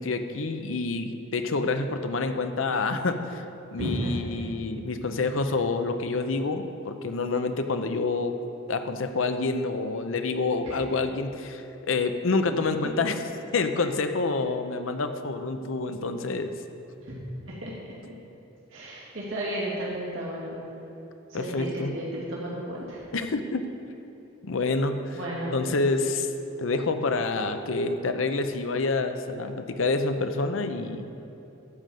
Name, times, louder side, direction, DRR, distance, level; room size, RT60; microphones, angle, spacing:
voice 1, 0.0-3.4 3.7-8.4 8.7-13.2 13.5-16.5 21.3-21.9 23.1-23.6 24.4-25.2 25.5-26.3 26.6-31.1, left 3 dB, 70° left, 8 dB, 0.7 m, -27 dB
voice 2, 3.8-4.1 10.6-10.8 17.0-17.2 17.5-17.7 18.0-18.1 18.7-20.6 21.3-23.1 25.1-25.7, right 1 dB, 70° right, -6 dB, 2.2 m, -33 dB
12.0 x 5.1 x 7.7 m, 3.0 s
head